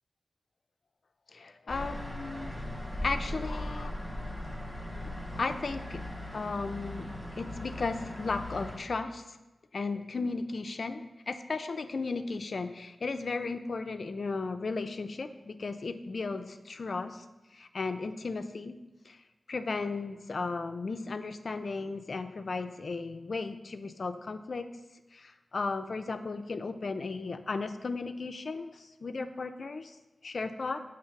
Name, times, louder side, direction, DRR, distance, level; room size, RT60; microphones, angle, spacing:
voice 1, 1.3-2.5 3.0-4.1 5.3-6.0 6.3-9.4 9.7-17.2 17.5-18.8 19.1-19.2 19.5-24.7 25.1-29.9 30.2-30.8, left 3 dB, 70° left, 9 dB, 0.4 m, -35 dB
sound 1, 1.7-8.8, left 1 dB, 10° right, 0.9 m, -39 dB
6.8 x 3.1 x 5.8 m, 1.1 s
wide cardioid pair, 65°, 0 cm